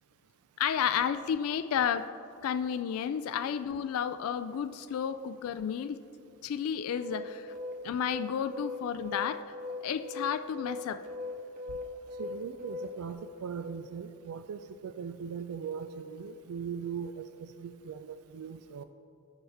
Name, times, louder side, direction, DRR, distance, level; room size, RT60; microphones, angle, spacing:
voice 1, 0.6-2.1 2.4-6.0 6.4-7.5 7.8-9.4 9.8-11.0, left 8 dB, 75° left, 10 dB, 0.3 m, -31 dB
sound 1, 7.0-13.1, left 3 dB, 40° right, 1.1 m, -39 dB
voice 2, 12.2-18.8, right 6 dB, 90° right, 10 dB, 0.3 m, -40 dB
14.0 x 5.6 x 3.5 m, 2.8 s
head